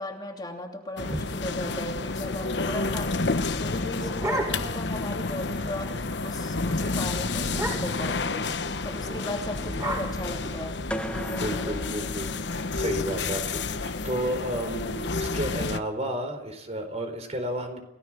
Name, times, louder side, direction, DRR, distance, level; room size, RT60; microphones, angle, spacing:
voice 1, 0.0-8.5 8.8-10.8, left 1 dB, 20° left, 2 dB, 2.9 m, -36 dB
sound 1, 1.0-15.8, left 3 dB, 70° left, 1.1 m, -30 dB
sound 2, 3.6-4.9 5.3-5.4 5.6-6.0 6.3-6.5 6.8-6.9 7.5-8.1 9.0-11.1, right 1 dB, 20° right, 6.4 m, -34 dB
sound 3, 10.9-13.0, equal, 5° left, 1.3 m, -37 dB
voice 2, 11.1-17.8, right 1 dB, 35° right, 6 dB, 4.4 m, -32 dB
29.5 x 17.0 x 6.2 m, 0.91 s
head